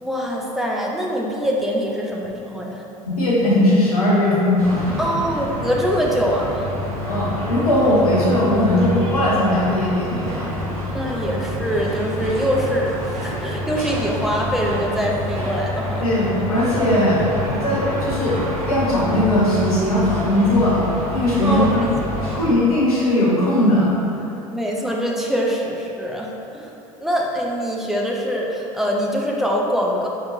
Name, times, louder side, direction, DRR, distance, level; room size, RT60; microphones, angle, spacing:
voice 1, 0.0-2.8 5.0-6.7 10.9-16.0 21.4-21.9 22.2-22.5 24.5-26.7 27.0-30.1, equal, ahead, -2 dB, 0.5 m, -23 dB
voice 2, 3.1-5.0 7.0-10.5 16.0-17.2 17.5-21.9 22.4-23.9, left 1 dB, 75° left, -7 dB, 1.2 m, -19 dB
sound 1, 4.6-22.5, equal, 70° right, 1.0 m, -28 dB
4.5 x 4.4 x 2.5 m, 2.9 s
figure-of-eight pair, 75°, 19 cm